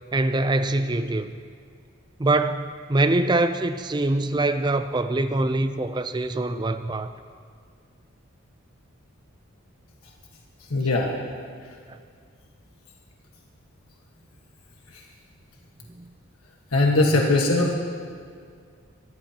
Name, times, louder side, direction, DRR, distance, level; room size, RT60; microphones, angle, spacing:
voice 1, 0.1-1.3 2.2-7.1, right 2 dB, 20° right, 10 dB, 0.4 m, -24 dB
voice 2, 10.7-11.1 16.7-17.8, left 2 dB, 90° left, 0 dB, 1.4 m, -20 dB
22.5 x 15.0 x 2.9 m, 2.2 s
head